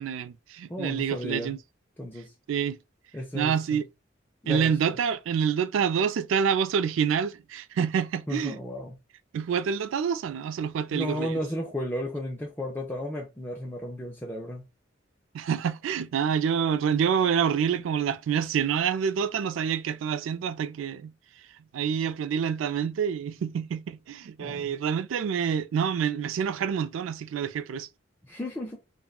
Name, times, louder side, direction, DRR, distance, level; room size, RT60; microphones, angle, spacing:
voice 1, 0.0-1.6 2.5-2.8 3.3-3.8 4.5-8.6 9.3-11.3 15.3-21.1 21.7-27.9, right 7 dB, 70° right, 0.3 m, -27 dB
voice 2, 0.7-1.5 2.0-2.3 3.1-3.8 4.4-5.0 8.3-9.0 10.9-14.7 24.4-24.8 28.2-28.8, left 1 dB, 10° left, 0.3 m, -34 dB
3.5 x 2.1 x 2.3 m
head